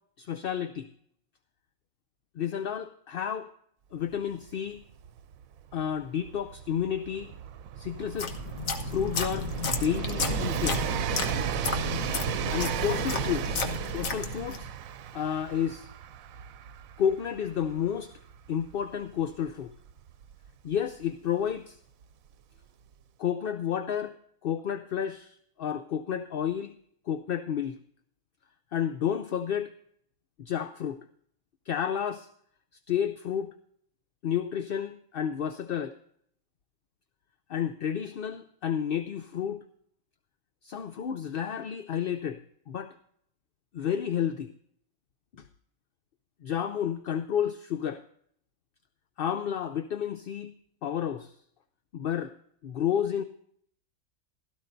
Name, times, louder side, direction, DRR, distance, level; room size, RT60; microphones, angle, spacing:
voice 1, 0.2-0.9 2.3-3.5 3.9-4.8 5.7-7.3 7.8-8.4 8.8-10.9 12.5-13.6 13.9-14.7 15.1-15.9 17.0-18.1 18.5-19.7 20.6-21.8 23.2-24.2 24.4-26.7 27.1-27.8 28.7-29.8 30.4-31.0 31.7-32.3 32.9-33.5 34.2-36.0 37.5-39.6 40.6-42.9 43.7-44.5 45.3-45.5 46.4-48.0 49.2-50.5 50.8-51.4 51.9-52.3 52.6-53.2, left 9 dB, 55° left, 10 dB, 0.7 m, -31 dB
Train, 4.1-4.2 4.4-21.0 22.0-22.1, right 9 dB, 90° right, 1.1 m, -35 dB
sound 1, 8.0-14.7, left 3 dB, 80° left, 1.6 m, -33 dB
16.5 x 14.0 x 2.6 m, 0.66 s
omnidirectional pair, 1.4 m